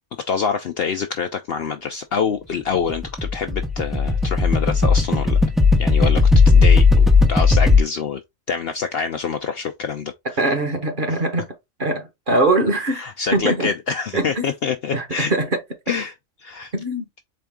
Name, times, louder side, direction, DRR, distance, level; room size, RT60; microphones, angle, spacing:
voice 1, 0.3-5.4 5.8-8.2 8.5-10.1 12.9-15.3 15.9-16.1 16.4-16.7, left 6 dB, 65° left, 0.6 m, -26 dB
sound 1, 2.7-7.8, left 4 dB, ahead, 0.4 m, -15 dB
voice 2, 10.4-11.5 11.8-13.0 13.3-13.7 14.1-14.4 14.9-15.6 16.7-17.1, right 2 dB, 40° right, 1.3 m, -21 dB
4.4 x 3.4 x 3.5 m
omnidirectional pair, 1.4 m